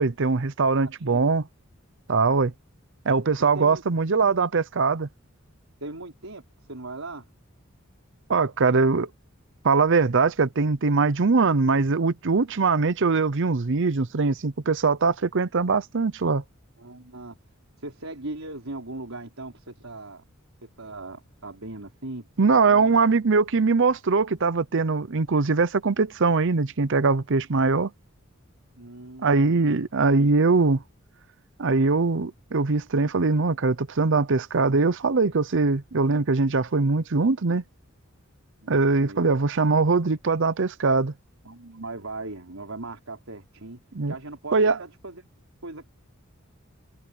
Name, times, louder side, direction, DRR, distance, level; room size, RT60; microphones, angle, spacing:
voice 1, 0.0-1.5 2.1-2.5 3.1-5.1 8.3-9.1 9.6-16.4 22.4-27.9 29.2-30.8 31.6-37.6 38.7-41.1 43.9-44.1 44.5-44.8, right 4 dB, 65° right, 0.7 m, -22 dB
voice 2, 0.8-1.3 3.4-3.8 5.8-6.4 6.7-7.2 16.8-17.4 17.8-20.2 20.6-22.3 22.5-23.0 28.8-29.5 38.6-39.3 41.4-43.8 44.1-45.3 45.6-45.9, right 2 dB, 85° right, 4.6 m, -39 dB
head